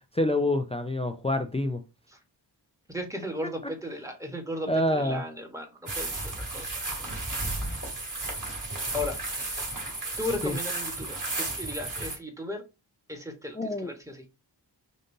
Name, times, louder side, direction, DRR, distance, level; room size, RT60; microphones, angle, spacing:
voice 1, 0.2-1.8 4.7-5.2 10.4-10.6 13.6-13.9, left 1 dB, 15° left, 0.4 m, -27 dB
voice 2, 2.9-5.7 6.0-6.7 8.9-9.2 10.2-12.6 13.1-14.2, left 1 dB, 5° right, 1.2 m, -35 dB
sound 1, 5.9-12.2, right 2 dB, 45° right, 2.3 m, -33 dB
5.2 x 2.6 x 2.6 m
cardioid pair, 70°, 43 cm